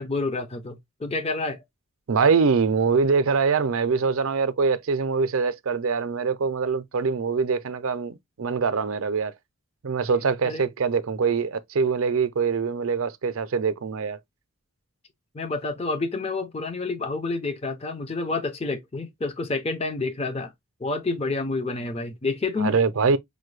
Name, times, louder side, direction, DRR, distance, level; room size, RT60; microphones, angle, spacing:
voice 1, 0.0-1.6 10.4-10.6 15.3-20.5 20.8-22.7, left 3 dB, 25° left, 0.5 m, -29 dB
voice 2, 2.1-9.3 9.8-14.2 22.6-23.2, right 5 dB, 70° right, 0.5 m, -23 dB
5.1 x 2.2 x 3.1 m
head